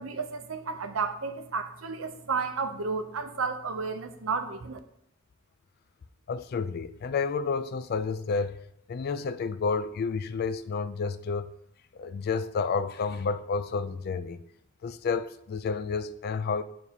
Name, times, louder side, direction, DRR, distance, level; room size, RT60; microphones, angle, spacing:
voice 1, 0.0-4.8, right 4 dB, 80° right, 0.7 m, -32 dB
voice 2, 6.3-8.6 8.9-11.5 11.9-14.4 14.8-16.6, left 5 dB, 50° left, 0.3 m, -30 dB
7.0 x 6.3 x 2.8 m
head